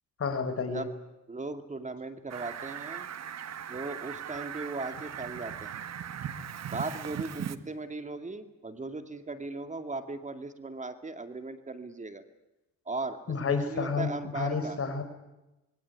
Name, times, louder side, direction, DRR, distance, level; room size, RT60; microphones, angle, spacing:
voice 1, 0.2-0.8 13.3-14.1 14.3-15.0, left 5 dB, 50° left, 9 dB, 5.2 m, -30 dB
voice 2, 1.3-3.1 3.7-5.7 6.7-12.2 12.9-14.8, right 3 dB, 25° right, 9 dB, 2.3 m, -38 dB
Fowl, 2.3-7.6, right 9 dB, 60° right, 1.9 m, -39 dB
26.0 x 22.5 x 9.6 m, 0.97 s
cardioid pair, 90°, 30 cm